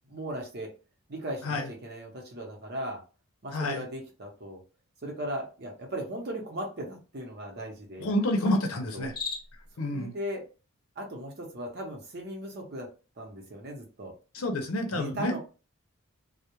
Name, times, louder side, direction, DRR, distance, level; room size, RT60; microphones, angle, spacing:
voice 1, 0.1-0.7 1.1-3.0 3.4-4.6 5.0-8.3 8.9-9.1 9.8-10.4 11.0-12.9 13.2-14.1 14.9-15.4, right 1 dB, 50° right, 1 dB, 0.7 m, -37 dB
voice 2, 3.5-3.8 8.0-9.1 9.8-10.1 14.3-15.4, left 1 dB, 75° left, 4 dB, 0.6 m, -28 dB
Cricket, 9.0-9.7, left 5 dB, 45° left, 0.8 m, -37 dB
2.3 x 2.0 x 2.9 m, 0.33 s
head